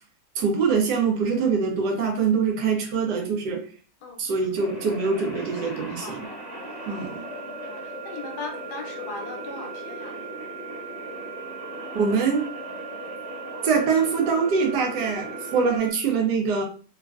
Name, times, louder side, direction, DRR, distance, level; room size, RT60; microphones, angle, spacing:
voice 1, 0.4-3.7 4.2-6.3 6.9-7.2 11.9-12.5 13.6-16.6, right 5 dB, 75° right, 2 dB, 1.2 m, -24 dB
sound 1, 4.5-15.8, left 1 dB, 55° left, 0.4 m, -39 dB
voice 2, 5.6-6.2 6.9-7.8 8.0-10.1, left 4 dB, 70° left, 3 dB, 1.1 m, -39 dB
sound 2, 6.0-15.9, right 10 dB, 10° right, 1.0 m, -41 dB
3.4 x 2.3 x 2.3 m, 0.41 s
omnidirectional pair, 1.9 m